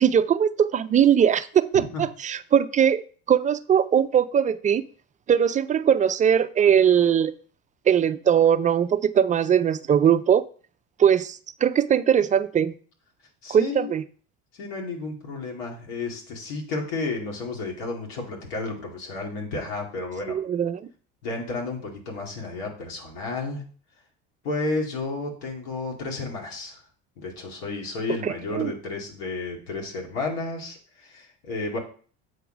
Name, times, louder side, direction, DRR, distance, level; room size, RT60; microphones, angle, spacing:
voice 1, 0.0-3.0 3.3-4.8 5.3-7.3 7.9-10.4 11.0-12.7 13.5-14.0 20.3-20.8 28.2-28.7, right 8 dB, 25° right, 14 dB, 0.3 m, -20 dB
voice 2, 1.7-2.1 13.4-13.9 14.5-20.4 21.2-23.6 24.4-26.8 27.2-31.8, left 3 dB, 90° left, 1 dB, 2.4 m, -32 dB
7.8 x 4.7 x 5.0 m, 0.43 s
supercardioid pair, 105°, 30 cm